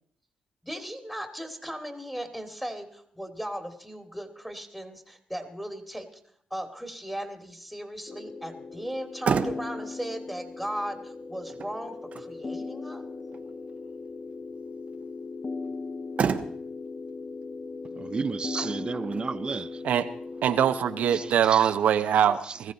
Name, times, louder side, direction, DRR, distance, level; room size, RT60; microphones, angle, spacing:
voice 1, 0.6-6.2 6.5-13.1 18.5-18.6, equal, 5° left, 2.5 m, -37 dB
sound 1, 8.1-21.3, left 4 dB, 35° left, 1.0 m, -38 dB
Motor vehicle (road), 8.9-21.8, right 6 dB, 55° right, 1.1 m, -36 dB
voice 2, 17.9-19.8 21.1-21.7 22.3-22.6, right 4 dB, 35° right, 0.5 m, -33 dB
voice 3, 20.4-22.7, right 9 dB, 80° right, 0.9 m, -23 dB
19.5 x 14.5 x 4.1 m
cardioid pair, 80°, 3 cm